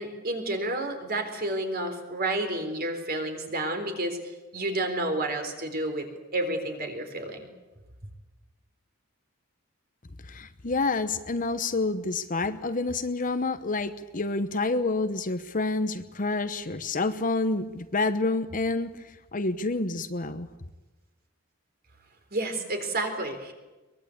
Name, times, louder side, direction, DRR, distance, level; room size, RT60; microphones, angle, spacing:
voice 1, 0.0-4.2 4.5-6.1 6.3-7.5 22.3-23.5, right 2 dB, 45° right, 6 dB, 3.9 m, -30 dB
voice 2, 10.3-20.5, left 3 dB, 40° left, 11 dB, 1.0 m, -28 dB
22.5 x 21.0 x 8.5 m, 1.1 s
head